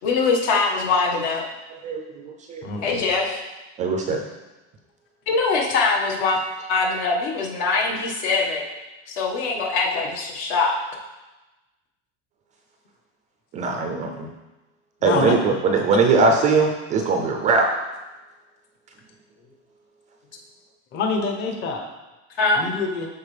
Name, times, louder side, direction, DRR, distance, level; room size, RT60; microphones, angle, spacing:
voice 1, 0.0-1.5 2.8-3.4 5.3-6.4 6.7-8.6 9.1-10.8 22.4-22.7, left 4 dB, 70° left, -1 dB, 1.7 m, -22 dB
voice 2, 1.8-2.6 3.8-4.2 13.5-14.3 15.0-17.7, right 4 dB, 20° right, 3 dB, 0.3 m, -21 dB
voice 3, 2.6-3.0 15.0-15.3 20.9-21.8 22.6-23.1, left 4 dB, 30° left, 3 dB, 0.8 m, -26 dB
12.5 x 4.2 x 3.3 m, 1.1 s
cardioid pair, 175°, 34 cm